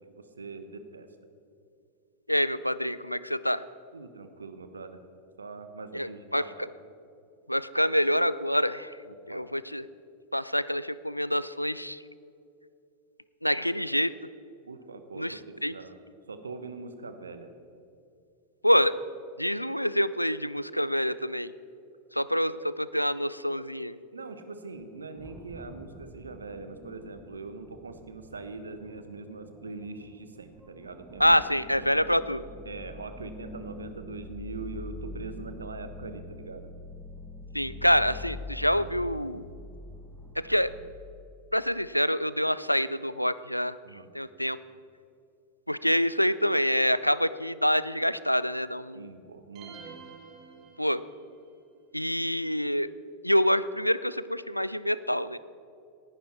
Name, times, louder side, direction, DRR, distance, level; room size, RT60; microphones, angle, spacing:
voice 1, 0.2-1.1 3.9-5.0 5.4-6.7 9.0-9.5 14.6-16.0 16.3-17.6 24.1-31.4 31.8-32.0 32.6-36.7 43.8-44.1 48.9-50.0, right 3 dB, 75° right, 9 dB, 1.1 m, -42 dB
voice 2, 2.3-3.6 5.9-6.4 7.5-9.0 9.3-9.8 10.3-12.0 13.4-14.1 15.2-15.8 18.6-18.9 19.4-21.5 22.1-24.0 31.2-32.4 37.5-39.4 40.4-40.7 41.5-43.8 44.1-44.6 45.7-49.1 50.8-51.0 51.9-52.9 53.2-55.4, equal, 90° left, 17 dB, 0.4 m, -26 dB
sound 1, 24.8-40.9, left 1 dB, 10° right, 1.3 m, -45 dB
sound 2, 49.6-51.4, right 6 dB, 40° right, 1.6 m, -48 dB
18.5 x 11.5 x 4.3 m, 2.6 s
figure-of-eight pair, 90°, 0 cm